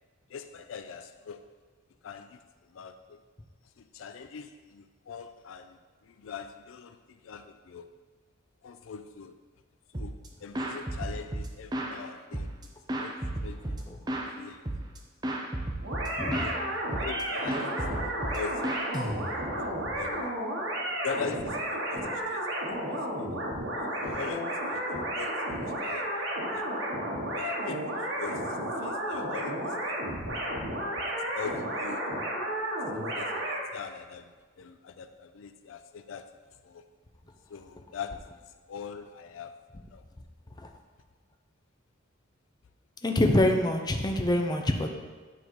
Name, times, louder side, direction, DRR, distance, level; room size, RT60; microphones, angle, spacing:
voice 1, 0.3-1.4 2.0-2.4 2.7-3.2 3.8-7.9 8.6-9.4 9.9-12.5 13.0-13.1 13.4-13.8 14.3-14.7 16.2-16.6 17.0-18.8 19.6-20.3 21.0-23.3 23.9-26.7 27.3-30.0 31.3-32.1 32.9-36.3 36.6-36.8 37.5-38.4 38.7-39.5 39.9-40.0, left 6 dB, 80° left, 9 dB, 0.4 m, -42 dB
sound 1, 9.9-10.3 10.5-12.0 12.3-14.3 14.7-15.0 15.2-16.6 16.9-17.2 17.5-19.6, right 1 dB, 20° right, 0.7 m, -33 dB
sound 2, 15.8-33.6, right 1 dB, 75° right, 1.3 m, -32 dB
voice 2, 16.2-16.5 40.6-40.7 43.0-44.9, left 1 dB, 20° left, 3 dB, 0.5 m, -25 dB
8.9 x 3.9 x 4.7 m, 1.4 s
head